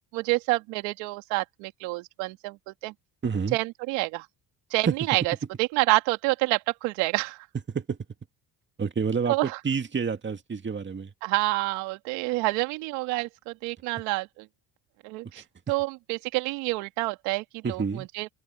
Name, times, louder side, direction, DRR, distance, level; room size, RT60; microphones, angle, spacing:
voice 1, 0.0-2.9 3.5-4.3 4.7-7.5 9.3-9.6 11.2-14.5 15.0-18.3, right 22 dB, 85° right, 2.4 m, -28 dB
voice 2, 3.2-3.6 4.8-4.9 7.7-8.0 8.8-9.4 9.6-11.1 15.4-15.5 17.6-18.1, right 6 dB, 25° right, 2.1 m, -28 dB
open air
supercardioid pair, 90°, 43 cm